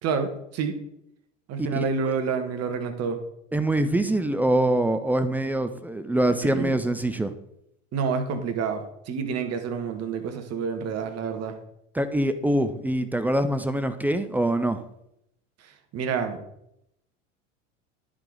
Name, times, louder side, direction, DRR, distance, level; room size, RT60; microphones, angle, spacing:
voice 1, 0.0-0.7 1.5-3.2 6.4-6.8 7.9-11.5 15.9-16.4, right 5 dB, 40° right, 8 dB, 1.3 m, -28 dB
voice 2, 1.7-2.1 3.5-7.3 11.9-14.8, right 1 dB, 5° right, 10 dB, 0.3 m, -24 dB
10.5 x 4.9 x 3.9 m, 0.80 s
hypercardioid pair, 85°, 38 cm